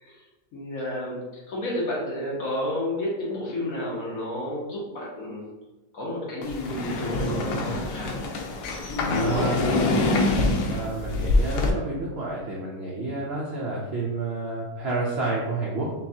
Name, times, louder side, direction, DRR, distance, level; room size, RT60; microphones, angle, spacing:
voice 1, 0.5-5.4 5.9-8.2 8.7-9.7, left 1 dB, 60° left, -4 dB, 1.5 m, -31 dB
sound 1, 6.4-11.7, left 2 dB, 90° left, 1.2 m, -25 dB
voice 2, 9.2-9.8 10.7-15.9, right 2 dB, 65° right, -3 dB, 0.6 m, -29 dB
5.7 x 2.3 x 2.8 m, 1.1 s
omnidirectional pair, 1.7 m